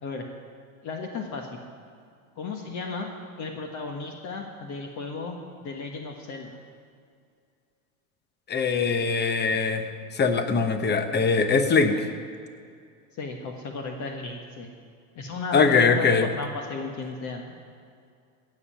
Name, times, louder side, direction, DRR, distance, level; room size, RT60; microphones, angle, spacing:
voice 1, 0.8-1.6 2.4-3.1 3.4-6.6 11.9-12.0 13.2-14.7 15.1-17.5, left 4 dB, 40° left, 2 dB, 1.4 m, -35 dB
voice 2, 8.5-9.9 10.1-12.0 15.5-16.3, left 4 dB, 25° left, 8 dB, 1.0 m, -22 dB
16.0 x 5.6 x 8.9 m, 2.3 s
supercardioid pair, 120°, 43 cm